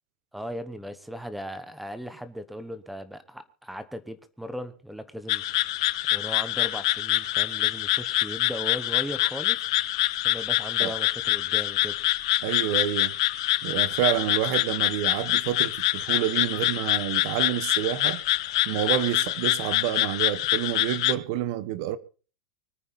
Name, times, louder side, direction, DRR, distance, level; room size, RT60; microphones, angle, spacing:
voice 1, 0.3-5.4 6.1-9.7 10.2-12.0, equal, ahead, 1.0 m, -37 dB
sound 1, 5.3-21.1, left 17 dB, 60° left, 0.8 m, -25 dB
voice 2, 12.4-13.1 13.6-18.2 18.6-22.0, right 13 dB, 45° right, 1.1 m, -28 dB
25.0 x 9.4 x 4.2 m
supercardioid pair, 170°, 3 cm